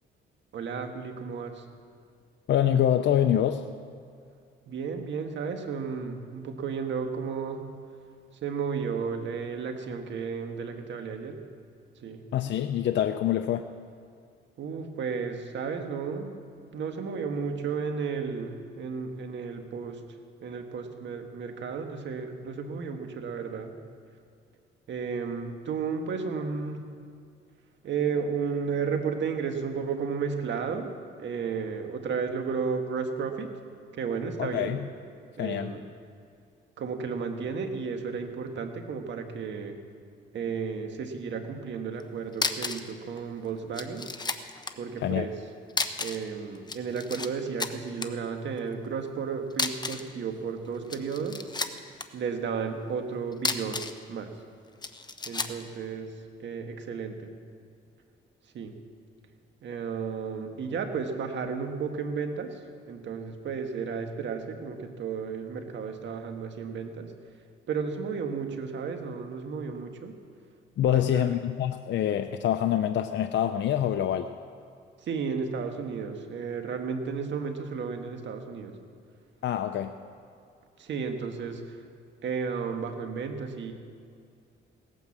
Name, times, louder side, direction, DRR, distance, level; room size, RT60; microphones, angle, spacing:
voice 1, 0.5-1.7 4.7-7.6 8.3-11.4 12.0-12.2 14.6-16.3 16.7-20.0 20.4-23.8 24.9-26.8 27.8-30.9 31.2-33.5 33.9-34.8 35.4-35.8 36.8-39.8 40.3-44.1 44.8-45.3 46.0-51.4 52.1-54.3 55.3-57.3 58.5-58.8 59.6-67.1 67.7-70.1 70.9-71.3 75.0-78.8 80.8-81.8 82.2-83.7, right 5 dB, 65° right, 5 dB, 1.8 m, -33 dB
voice 2, 2.5-3.7 12.3-13.6 34.4-34.9 35.4-35.8 45.0-45.3 70.8-74.3 79.4-80.0, left 10 dB, 65° left, 7 dB, 0.6 m, -25 dB
sound 1, 42.0-42.1 42.3-42.9 43.2-43.3 43.7-44.8 45.7-46.3 46.6-47.3 47.6-48.1 49.5-50.1 50.7-52.1 53.3-54.0 54.8-55.6, left 3 dB, 20° left, 0.9 m, -31 dB
17.5 x 9.3 x 7.3 m, 2.4 s
cardioid pair, 90°, 20 cm